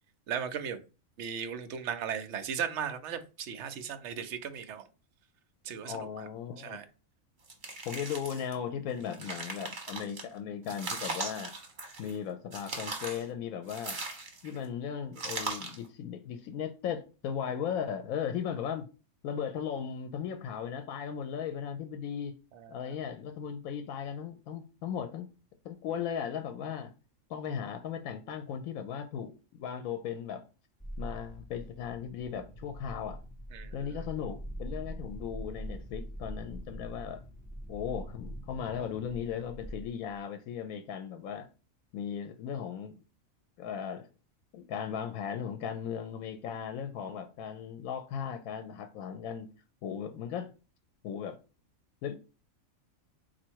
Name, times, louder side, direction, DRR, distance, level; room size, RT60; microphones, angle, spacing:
voice 1, 0.3-0.8 1.2-4.9 5.6-6.1 6.6-6.8 22.5-22.9 33.5-33.7, right 8 dB, 65° right, 0.8 m, -36 dB
voice 2, 5.8-6.8 7.8-11.5 12.0-14.0 14.4-18.9 19.2-22.3 22.7-25.3 25.6-26.9 27.3-30.4 31.0-33.2 33.7-37.2 37.7-41.5 41.9-43.0 43.6-44.1 44.5-49.5 49.8-50.5 51.0-51.4 52.0-52.2, left 8 dB, 85° left, 1.0 m, -37 dB
sound 1, 7.5-8.5 9.0-10.2 10.7-12.2 12.5-13.3 13.7-14.6 15.2-15.8, right 3 dB, 40° right, 1.1 m, -39 dB
sound 2, 30.8-40.2, equal, 10° left, 0.5 m, -43 dB
4.2 x 2.5 x 4.5 m
omnidirectional pair, 1.4 m